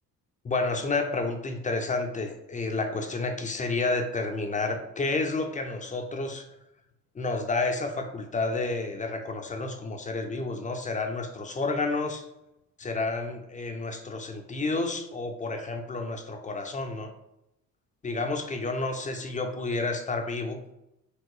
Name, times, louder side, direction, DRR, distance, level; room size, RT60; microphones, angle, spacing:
voice 1, 0.4-6.4 7.1-12.2 12.8-17.1 18.0-20.6, left 3 dB, 15° left, 5 dB, 0.5 m, -30 dB
4.8 x 2.9 x 2.6 m, 0.86 s
figure-of-eight pair, 50°, 48 cm